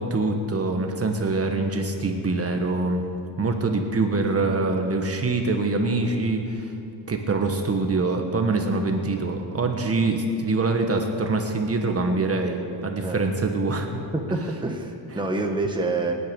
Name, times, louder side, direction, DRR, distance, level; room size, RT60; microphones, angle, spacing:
voice 1, 0.0-3.0 3.4-6.7 7.1-13.9 14.3-14.5, right 3 dB, 30° right, 4 dB, 1.4 m, -24 dB
voice 2, 13.9-16.1, right 2 dB, 10° right, 2 dB, 1.4 m, -27 dB
25.5 x 9.4 x 5.3 m, 2.7 s
cardioid pair, 115°, 46 cm